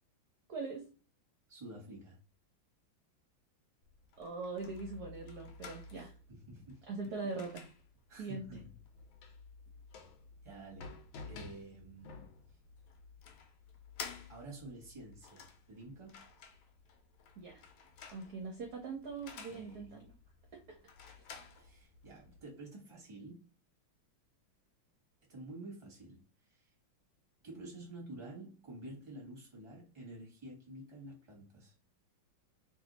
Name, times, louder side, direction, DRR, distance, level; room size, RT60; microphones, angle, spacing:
voice 1, 0.5-0.8 4.2-6.1 6.9-7.7 8.2-8.6 17.4-17.6 18.1-20.0 20.7-20.8, right 4 dB, 60° right, 1.1 m, -41 dB
voice 2, 1.5-2.2 5.9-6.9 8.1-8.8 9.3-9.4 10.4-10.9 11.3-12.3 14.3-16.2 19.5-20.0 21.6-23.5 25.3-26.7 27.4-31.7, right 2 dB, 15° right, 1.1 m, -50 dB
sound 1, 3.8-22.4, left 5 dB, 80° left, 1.5 m, -52 dB
3.2 x 2.7 x 4.0 m
omnidirectional pair, 2.3 m